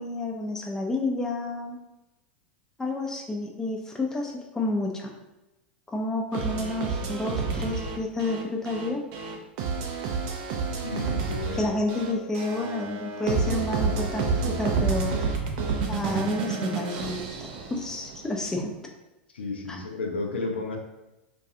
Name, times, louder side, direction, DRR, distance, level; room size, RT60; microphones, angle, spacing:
voice 1, 0.0-1.8 2.8-5.1 5.9-9.0 11.5-15.4 15.9-18.8 19.7-19.8, left 2 dB, 10° left, 0 dB, 0.4 m, -30 dB
sound 1, 6.3-18.3, right 5 dB, 55° right, 0.4 m, -29 dB
voice 2, 10.8-11.8 19.3-20.8, left 3 dB, 80° left, 1 dB, 0.4 m, -32 dB
2.3 x 2.2 x 2.7 m, 0.99 s
figure-of-eight pair, 90°, 6 cm